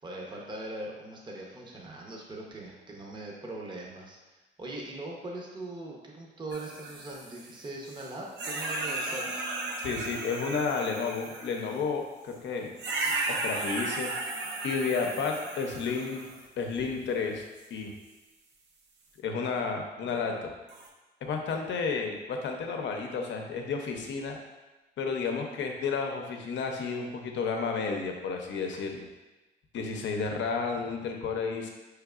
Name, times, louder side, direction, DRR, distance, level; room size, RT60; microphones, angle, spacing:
voice 1, 0.0-9.5 19.4-20.2, right 2 dB, 25° right, -2 dB, 0.7 m, -41 dB
sound 1, 6.5-8.1 8.4-11.8 12.8-16.5 17.6-17.7 20.7-20.9, right 2 dB, 65° right, 0.7 m, -35 dB
voice 2, 9.8-12.7 13.1-14.1 14.6-16.2 16.6-17.4 17.7-17.9 19.2-20.5 21.2-24.4 25.0-29.1 29.7-31.7, left 5 dB, 70° left, 3 dB, 0.6 m, -31 dB
4.6 x 3.3 x 2.4 m, 1.1 s
cardioid pair, 90°, 20 cm